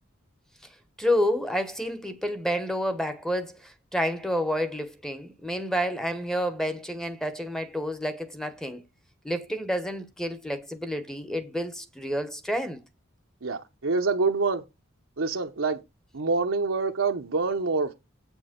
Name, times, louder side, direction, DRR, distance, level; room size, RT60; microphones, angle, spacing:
voice 1, 1.0-8.8 9.2-12.8, equal, 5° left, 1.1 m, -29 dB
voice 2, 13.4-14.6 15.2-15.8 16.1-17.9, right 4 dB, 70° right, 0.9 m, -26 dB
8.3 x 6.2 x 5.2 m
head